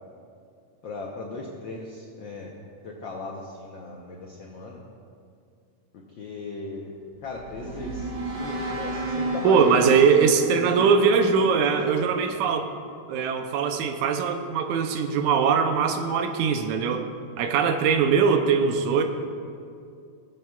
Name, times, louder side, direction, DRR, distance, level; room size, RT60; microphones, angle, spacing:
voice 1, 0.8-2.5 2.8-4.8 6.1-6.9 7.2-10.3 10.6-10.9 11.8-12.2, left 3 dB, 90° left, -1 dB, 1.0 m, -37 dB
sound 1, 7.1-12.3, right 2 dB, 45° right, 2.5 m, -32 dB
voice 2, 9.4-12.7 13.1-17.1 17.4-19.0, right 6 dB, 85° right, 6 dB, 2.1 m, -21 dB
22.0 x 7.6 x 2.4 m, 2.4 s
omnidirectional pair, 3.4 m